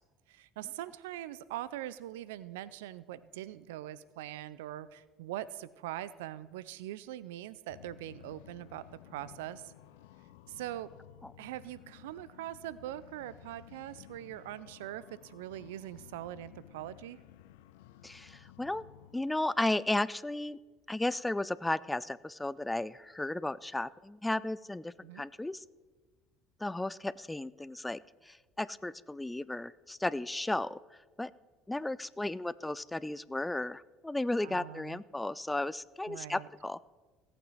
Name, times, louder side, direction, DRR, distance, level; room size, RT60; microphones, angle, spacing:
voice 1, 0.3-9.7 10.5-10.9 11.4-17.2 25.0-25.2 34.4-35.0 36.1-36.5, right 13 dB, 90° right, 18 dB, 0.4 m, -42 dB
sound 1, 7.7-19.2, left 12 dB, 85° left, 0.5 m, -55 dB
voice 2, 18.0-18.8 19.1-20.6 20.9-25.6 26.6-30.8 31.2-31.3 31.7-36.8, left 2 dB, 10° left, 20 dB, 0.4 m, -34 dB
17.5 x 8.7 x 4.1 m, 1.3 s
supercardioid pair, 85°, 0 cm